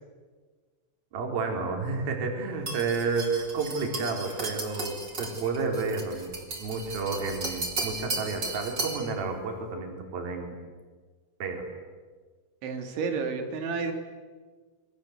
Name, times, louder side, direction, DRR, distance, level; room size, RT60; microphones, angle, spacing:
voice 1, 1.1-6.3 6.6-10.6 11.4-11.7, right 4 dB, 55° right, 2 dB, 5.5 m, -31 dB
sound 1, 2.7-9.1, right 3 dB, 25° right, 4.2 m, -35 dB
voice 2, 12.6-13.9, right 5 dB, 85° right, 6 dB, 5.1 m, -30 dB
29.0 x 24.5 x 8.1 m, 1.4 s
omnidirectional pair, 5.2 m